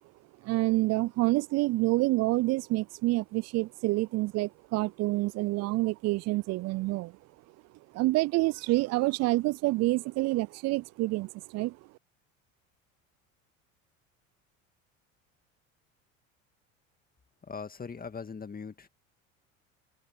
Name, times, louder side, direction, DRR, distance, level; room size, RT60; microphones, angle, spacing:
voice 1, 0.4-7.1 7.9-11.8, right 20 dB, 40° right, 0.5 m, -27 dB
voice 2, 17.4-18.9, left 5 dB, 20° left, 2.0 m, -40 dB
hypercardioid pair, 70°, 39 cm